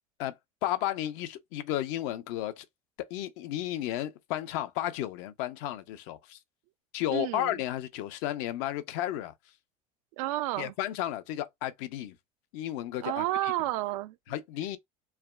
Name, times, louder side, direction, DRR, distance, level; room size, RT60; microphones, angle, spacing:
voice 1, 0.2-2.7 3.1-6.4 6.9-9.3 10.6-12.2 12.5-13.5 14.3-14.8, left 13 dB, 65° left, 0.6 m, -33 dB
voice 2, 7.1-7.5 10.2-10.7 13.0-14.1, right 16 dB, 75° right, 0.4 m, -31 dB
3.3 x 2.1 x 2.3 m
hypercardioid pair, 85°, 18 cm